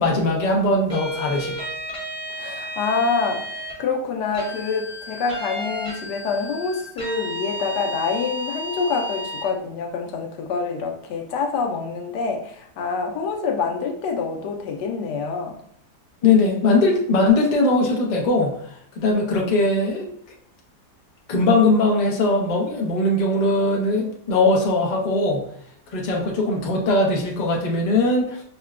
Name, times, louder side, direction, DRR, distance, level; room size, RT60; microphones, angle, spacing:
voice 1, 0.0-1.6 16.2-18.5 19.0-20.1 21.3-25.4 25.9-28.4, left 2 dB, 40° left, -2 dB, 0.6 m, -20 dB
sound 1, 0.9-3.8 4.3-9.5, equal, 5° left, 0.8 m, -33 dB
voice 2, 2.3-15.6, left 4 dB, 90° left, 2 dB, 1.2 m, -26 dB
5.6 x 2.1 x 2.4 m, 0.64 s
omnidirectional pair, 1.8 m